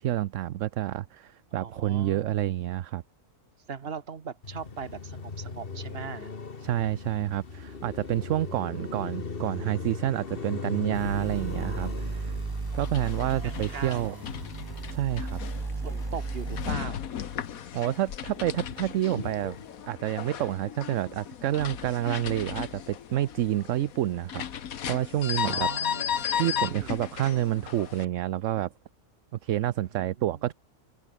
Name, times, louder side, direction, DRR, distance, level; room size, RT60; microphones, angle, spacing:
voice 1, 0.0-3.0 6.6-12.3 12.7-14.1 14.9-15.4 17.7-19.6 19.9-24.4 24.9-25.7 26.4-28.7 29.4-30.5, right 12 dB, 65° right, 1.0 m, -28 dB
voice 2, 1.5-2.4 3.7-6.3 13.4-14.3 15.8-17.1 25.4-27.0 30.3-30.5, right 6 dB, 45° right, 1.5 m, -39 dB
Car passing by, 4.4-16.9 17.2-19.7, left 4 dB, 40° left, 1.8 m, -40 dB
sound 1, 10.9-16.7, right 3 dB, 25° right, 0.6 m, -35 dB
sound 2, 12.7-28.1, left 9 dB, 75° left, 1.5 m, -35 dB
omnidirectional pair, 1.5 m